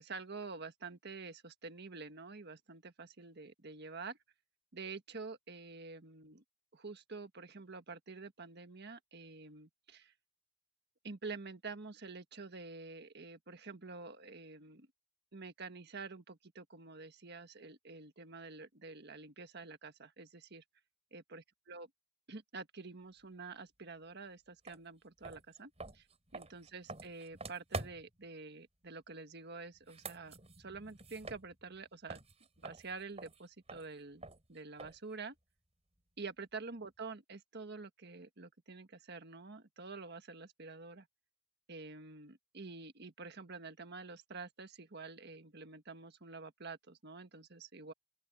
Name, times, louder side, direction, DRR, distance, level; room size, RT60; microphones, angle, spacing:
voice 1, 0.0-4.2 4.7-6.4 6.7-10.1 11.0-14.9 15.3-20.6 21.1-21.9 22.3-26.1 26.3-32.2 32.6-35.3 36.2-41.1 41.7-47.9, right 4 dB, 55° right, 1.5 m, -48 dB
sound 1, 24.7-24.8 25.2-28.2 29.7-31.8 32.1-35.1, right 3 dB, 35° right, 4.5 m, -47 dB
open air
head